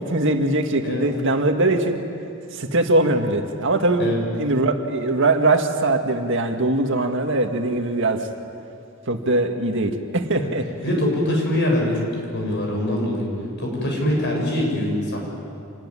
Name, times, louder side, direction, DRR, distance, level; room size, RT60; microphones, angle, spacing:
voice 1, 0.0-2.0 2.5-4.1 4.4-8.2 9.1-10.6, right 2 dB, 60° right, 4 dB, 1.9 m, -21 dB
voice 2, 10.8-13.3 13.6-15.2, left 1 dB, 55° left, -1 dB, 7.4 m, -23 dB
27.0 x 20.0 x 9.9 m, 2.5 s
head